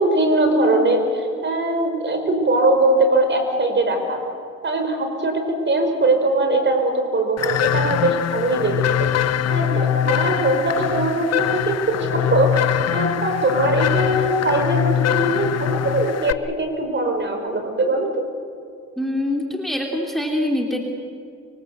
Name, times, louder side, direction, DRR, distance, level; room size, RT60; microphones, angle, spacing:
voice 1, 0.0-4.2 4.6-9.1 9.5-18.2, right 2 dB, 40° right, 5 dB, 5.1 m, -21 dB
sound 1, 7.4-16.3, left 10 dB, 55° left, 0.8 m, -22 dB
voice 2, 19.0-20.8, left 1 dB, ahead, 0 dB, 3.2 m, -24 dB
24.5 x 24.0 x 8.1 m, 2.3 s
cardioid pair, 90°, 30 cm